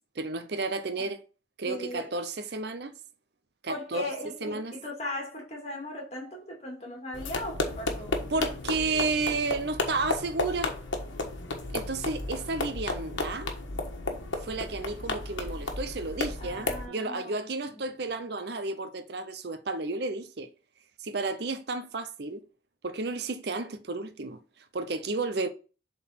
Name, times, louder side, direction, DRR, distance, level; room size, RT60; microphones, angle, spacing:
voice 1, 0.2-1.2 1.6-2.9 3.6-4.1 4.4-4.7 8.3-10.7 11.7-13.5 14.4-20.5 21.0-22.4 22.8-24.4 24.7-25.5, right 3 dB, 60° right, 0.6 m, -32 dB
voice 2, 1.6-2.2 3.7-8.2 16.4-17.8, left 1 dB, 35° left, 2.4 m, -38 dB
sound 1, 7.1-16.9, left 2 dB, 80° left, 1.3 m, -33 dB
7.4 x 4.0 x 4.3 m
head